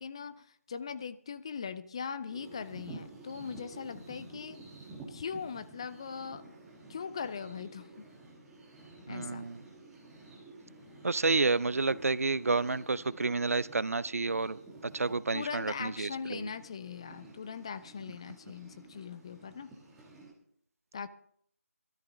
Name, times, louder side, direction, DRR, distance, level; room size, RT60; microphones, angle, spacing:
voice 1, 0.0-4.6 5.1-6.4 6.9-8.1 9.1-9.5 15.3-19.7 20.9-21.1, left 6 dB, 20° left, 0.4 m, -40 dB
sound 1, 2.3-20.3, right 2 dB, 5° right, 1.3 m, -51 dB
voice 2, 9.1-9.6 11.0-14.6 14.8-16.5, right 3 dB, 65° right, 0.5 m, -30 dB
18.5 x 13.0 x 2.6 m
figure-of-eight pair, 160°, 8 cm